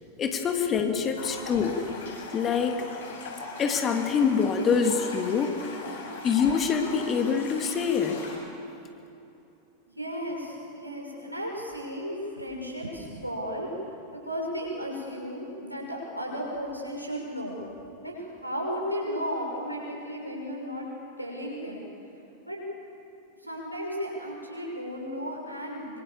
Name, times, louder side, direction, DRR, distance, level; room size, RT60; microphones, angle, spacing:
voice 1, 0.2-1.8 2.3-2.8 3.6-5.6 6.2-8.2, left 6 dB, 25° left, 4 dB, 2.5 m, -25 dB
sound 1, 1.1-8.3, left 3 dB, 60° left, 7.4 m, -40 dB
voice 2, 9.9-13.7 14.1-17.6 18.0-20.8 21.2-21.8 22.5-22.6 23.4-26.0, equal, 90° right, -2 dB, 6.4 m, -34 dB
25.0 x 25.0 x 7.3 m, 2.8 s
figure-of-eight pair, 90°, 0 cm